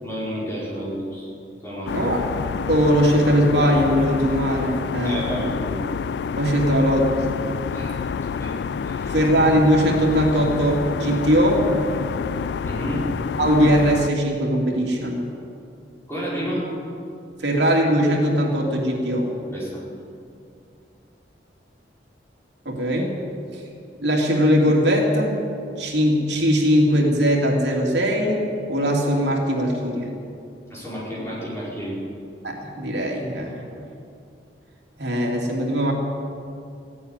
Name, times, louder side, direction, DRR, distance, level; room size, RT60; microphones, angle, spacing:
voice 1, 0.0-1.3 1.6-2.1 5.0-5.8 6.6-6.7 7.7-8.0 8.4-8.6 8.8-9.2 12.6-13.0 16.1-16.7 19.5-19.8 30.7-32.0, equal, 15° left, -7 dB, 4.9 m, -31 dB
sound 1, 1.9-14.1, left 6 dB, 75° left, 0.3 m, -28 dB
voice 2, 2.7-5.5 6.4-7.1 9.1-11.7 13.4-15.3 17.4-19.3 22.6-23.2 23.5-23.6 24.0-25.4 25.8-30.1 32.4-33.6 35.0-35.9, equal, 80° right, -1 dB, 2.9 m, -20 dB
15.5 x 9.0 x 9.9 m, 2.5 s
head